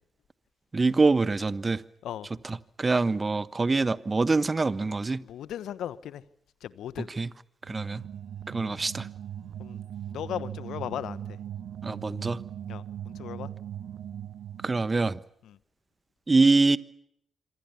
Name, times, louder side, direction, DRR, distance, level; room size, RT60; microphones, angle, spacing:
voice 1, 0.7-1.8 2.4-5.2 7.0-7.3 7.7-8.0 8.5-9.1 11.8-12.4 14.6-15.2 16.3-16.8, right 3 dB, 30° right, 1.2 m, -24 dB
voice 2, 5.3-6.2 6.6-7.1 9.6-9.8 10.1-11.2 12.7-13.5, left 10 dB, 70° left, 1.2 m, -36 dB
sound 1, 7.6-15.0, right 10 dB, 65° right, 1.4 m, -39 dB
26.5 x 24.5 x 7.1 m
hypercardioid pair, 40°, 0 cm